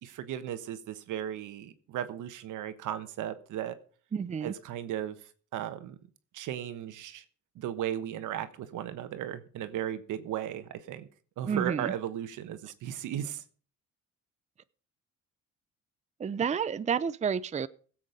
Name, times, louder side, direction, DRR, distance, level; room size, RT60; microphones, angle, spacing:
voice 1, 0.0-3.8 4.4-5.2 5.5-6.0 6.3-7.2 7.5-11.1 11.4-13.4, right 11 dB, 85° right, 11 dB, 1.2 m, -36 dB
voice 2, 4.1-4.5 11.5-11.9 16.2-17.7, right 7 dB, 25° right, 15 dB, 0.5 m, -30 dB
16.5 x 7.6 x 5.0 m, 0.43 s
cardioid pair, 90°, 30 cm